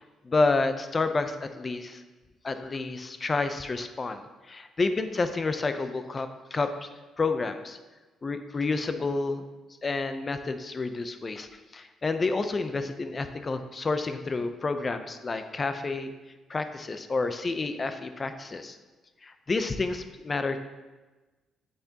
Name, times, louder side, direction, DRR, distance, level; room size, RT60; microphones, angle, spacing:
voice 1, 0.2-2.0 2.4-6.9 7.2-7.8 8.2-9.5 9.8-11.5 11.7-16.1 16.5-18.8 19.2-20.6, left 3 dB, 30° left, 9 dB, 0.6 m, -29 dB
8.3 x 8.2 x 2.9 m, 1.2 s
cardioid pair, 90°, 0 cm